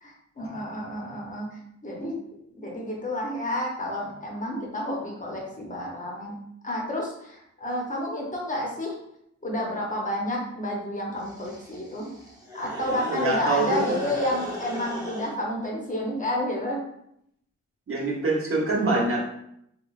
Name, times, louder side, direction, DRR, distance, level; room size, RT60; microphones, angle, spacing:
voice 1, 0.0-2.2 2.5-6.3 6.6-9.0 9.4-12.1 12.5-16.8, left 1 dB, 25° left, -3 dB, 0.6 m, -30 dB
sound 1, 11.2-15.3, left 1 dB, 10° right, 0.7 m, -36 dB
voice 2, 13.1-14.0 17.9-19.3, right 2 dB, 45° right, -4 dB, 0.9 m, -25 dB
3.1 x 3.1 x 2.3 m, 0.75 s
wide cardioid pair, 135°, 30 cm